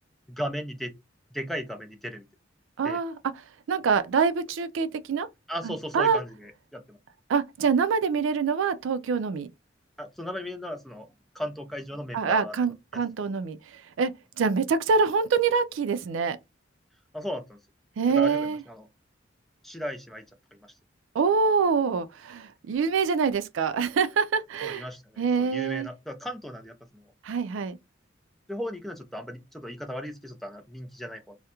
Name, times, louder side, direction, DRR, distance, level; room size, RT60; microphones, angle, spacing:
voice 1, 0.3-0.9 1.3-2.3 2.8-3.0 5.5-7.0 10.0-11.1 11.3-13.0 17.1-17.6 18.1-18.9 19.6-20.2 20.5-20.7 24.6-27.1 28.5-31.4, equal, ahead, 0.4 m, -36 dB
voice 2, 2.8-3.1 3.7-5.3 5.6-6.2 7.3-9.5 12.1-13.6 14.0-16.4 18.0-18.6 21.1-24.8 25.2-25.9 27.2-27.8, right 5 dB, 90° right, 0.4 m, -25 dB
2.3 x 2.1 x 2.8 m
head